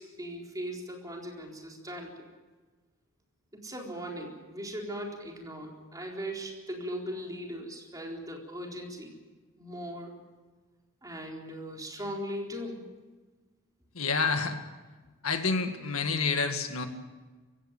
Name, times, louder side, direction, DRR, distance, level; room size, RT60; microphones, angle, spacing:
voice 1, 0.0-2.3 3.5-9.2 9.6-10.1 11.0-12.9, equal, 15° right, 0 dB, 4.1 m, -39 dB
voice 2, 14.0-14.6 15.2-16.9, left 4 dB, 75° left, 6 dB, 2.0 m, -28 dB
23.5 x 16.0 x 9.0 m, 1.3 s
head